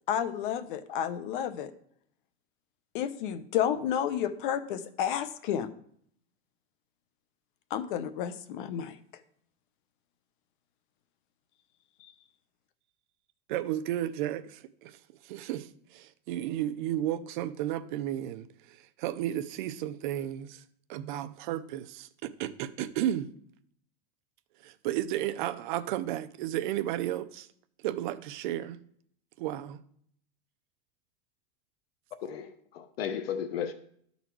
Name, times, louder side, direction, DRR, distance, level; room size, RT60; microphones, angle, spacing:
voice 1, 0.1-1.7 2.9-5.7 7.7-8.9, left 9 dB, 60° left, 0.8 m, -31 dB
voice 2, 13.5-15.0 15.2-20.6 20.9-23.3 24.6-27.5 27.8-28.8 29.4-29.8, right 12 dB, 55° right, 0.6 m, -33 dB
voice 3, 32.2-33.7, left 8 dB, 90° left, 0.9 m, -34 dB
12.0 x 4.1 x 4.6 m
supercardioid pair, 155°, 29 cm